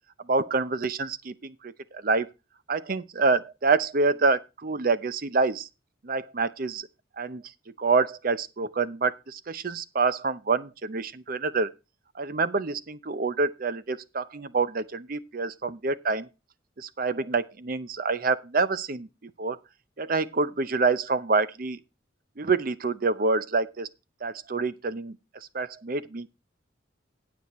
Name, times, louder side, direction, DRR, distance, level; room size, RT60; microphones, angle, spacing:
voice 1, 0.2-2.3 2.7-5.7 6.0-6.9 7.2-7.4 7.8-11.7 12.1-16.3 16.8-19.6 20.0-21.8 22.4-23.9 24.2-25.2 25.5-26.3, right 4 dB, 45° right, 0.6 m, -27 dB
18.0 x 6.3 x 3.0 m
head